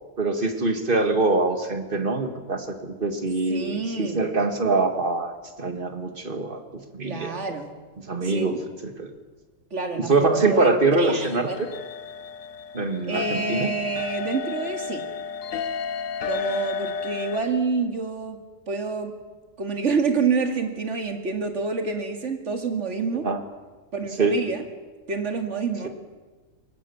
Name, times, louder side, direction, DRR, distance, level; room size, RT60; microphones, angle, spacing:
voice 1, 0.2-5.3 5.6-7.4 8.1-9.1 10.0-11.7 12.7-13.7 23.2-23.4 24.2-24.4, right 3 dB, 40° right, 7 dB, 2.0 m, -24 dB
voice 2, 3.5-4.2 7.0-7.7 8.2-8.7 9.7-11.6 13.1-15.1 16.2-18.4 18.7-19.1 19.6-23.3 23.9-24.6 25.1-25.9, right 5 dB, 60° right, 5 dB, 2.6 m, -28 dB
sound 1, 11.0-17.4, left 6 dB, 75° left, 1.2 m, -32 dB
23.5 x 20.0 x 7.1 m, 1.3 s
omnidirectional pair, 1.4 m